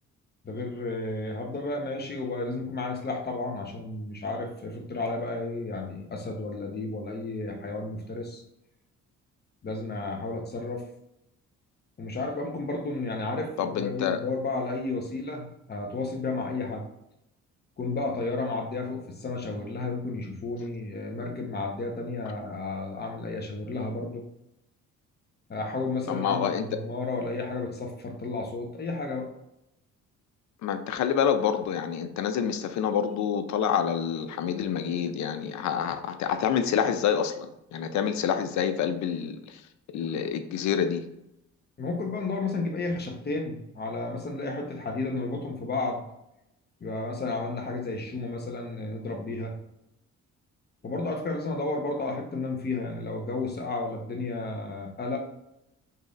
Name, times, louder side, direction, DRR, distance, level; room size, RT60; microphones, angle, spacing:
voice 1, 0.4-8.4 9.6-10.8 12.0-16.9 17.8-24.2 25.5-29.3 41.8-46.0 46.8-49.5 50.8-55.2, left 3 dB, 35° left, 3 dB, 0.8 m, -32 dB
voice 2, 13.6-14.2 26.1-26.6 30.6-39.4 39.9-41.0, left 8 dB, 70° left, 9 dB, 0.5 m, -27 dB
3.0 x 2.7 x 3.8 m, 0.82 s
cardioid pair, 90°, 30 cm